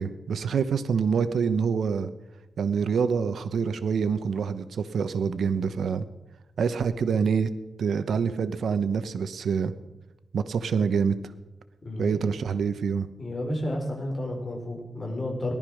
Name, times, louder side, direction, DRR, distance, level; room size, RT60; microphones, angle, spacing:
voice 1, 0.0-2.1 2.6-6.1 6.6-7.5 7.8-9.7 10.3-11.2 12.0-13.1, right 6 dB, 85° right, 11 dB, 1.0 m, -26 dB
voice 2, 11.8-12.2 13.2-15.5, left 1 dB, 30° left, 1 dB, 4.6 m, -31 dB
18.5 x 12.0 x 6.4 m, 1.0 s
wide cardioid pair, 125°, 0 cm